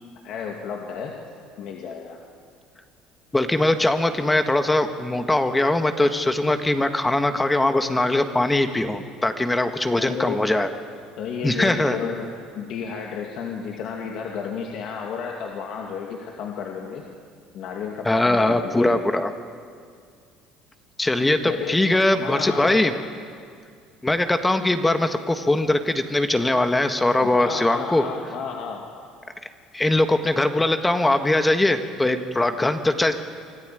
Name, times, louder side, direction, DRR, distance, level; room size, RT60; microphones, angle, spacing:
voice 1, 0.2-1.1 1.6-2.2 10.0-10.4 11.2-12.3 12.6-17.0 17.5-19.0 21.4-22.8 27.2-28.8, left 6 dB, 65° left, 1 dB, 2.4 m, -32 dB
voice 2, 3.3-10.7 11.4-12.0 18.0-19.3 21.0-22.9 24.0-28.0 29.7-33.1, left 2 dB, 10° left, 8 dB, 1.6 m, -21 dB
25.0 x 14.0 x 9.2 m, 2.2 s
supercardioid pair, 90°, 0 cm